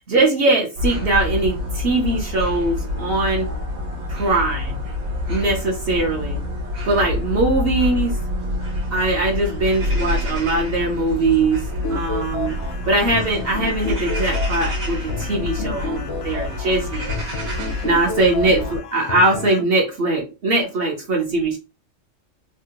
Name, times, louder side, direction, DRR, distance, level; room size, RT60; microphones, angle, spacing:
voice 1, 0.1-3.5 4.1-4.8 5.3-6.4 6.8-8.2 8.9-11.6 11.9-12.6 12.9-17.2 17.8-21.6, right 2 dB, 55° right, 0 dB, 0.8 m, -21 dB
sound 1, 0.8-18.8, left 2 dB, 85° right, 1.4 m, -27 dB
sound 2, 11.8-19.6, left 3 dB, 65° left, 0.7 m, -31 dB
3.4 x 2.1 x 2.8 m, 0.29 s
omnidirectional pair, 1.4 m